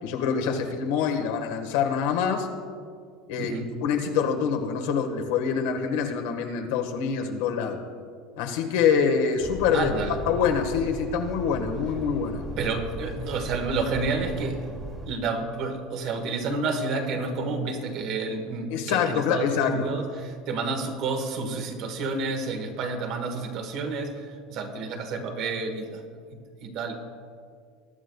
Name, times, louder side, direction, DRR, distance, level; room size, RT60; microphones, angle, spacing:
voice 1, 0.0-2.5 3.3-7.8 8.4-9.9 10.3-12.5 18.7-19.9, left 6 dB, 75° left, 4 dB, 1.5 m, -25 dB
voice 2, 3.4-3.7 9.7-10.2 12.6-14.7 15.1-26.0 26.3-27.0, right 3 dB, 45° right, 5 dB, 1.4 m, -30 dB
sound 1, 9.4-15.1, right 1 dB, 15° right, 1.4 m, -37 dB
21.5 x 11.0 x 2.3 m, 2.1 s
cardioid pair, 165°, 0 cm